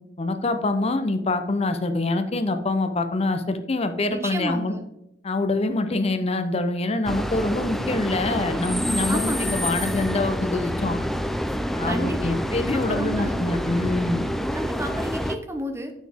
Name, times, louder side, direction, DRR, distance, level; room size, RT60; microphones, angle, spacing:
voice 1, 0.2-4.7 5.2-11.0 11.8-14.3, left 2 dB, 35° left, 8 dB, 0.7 m, -25 dB
voice 2, 4.1-4.8 9.1-9.6 11.9-12.4 12.7-13.5 14.5-15.9, right 1 dB, 15° right, 5 dB, 0.8 m, -31 dB
sound 1, 7.0-15.4, equal, ahead, 0.3 m, -27 dB
8.1 x 6.3 x 3.5 m, 0.83 s
head